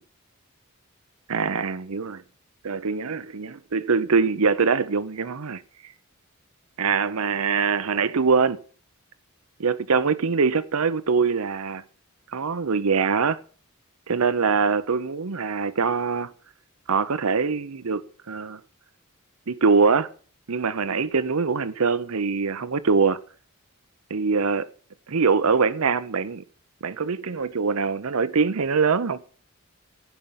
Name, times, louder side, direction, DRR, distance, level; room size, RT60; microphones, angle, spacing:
voice 1, 1.3-2.2 2.6-5.6 6.8-8.6 9.6-11.8 12.3-13.4 14.1-16.3 16.9-18.0 18.3-18.6 19.5-20.1 20.5-23.2 24.1-24.7 25.1-26.4 26.8-29.2, right 5 dB, 75° right, 0.7 m, -23 dB
16.0 x 5.5 x 8.9 m
head